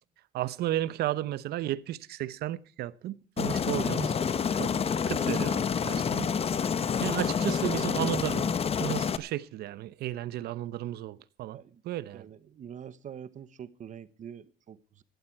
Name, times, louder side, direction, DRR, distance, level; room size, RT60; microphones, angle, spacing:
voice 1, 0.3-4.2 4.6-4.7 5.1-6.3 7.0-8.5 8.8-11.6 11.8-12.3, right 14 dB, 70° right, 0.9 m, -33 dB
Aircraft, 3.4-9.2, left 7 dB, 35° left, 0.9 m, -28 dB
voice 2, 11.5-11.8 12.1-15.0, right 8 dB, 45° right, 1.1 m, -45 dB
17.5 x 12.0 x 4.6 m
cardioid pair, 110°, 17 cm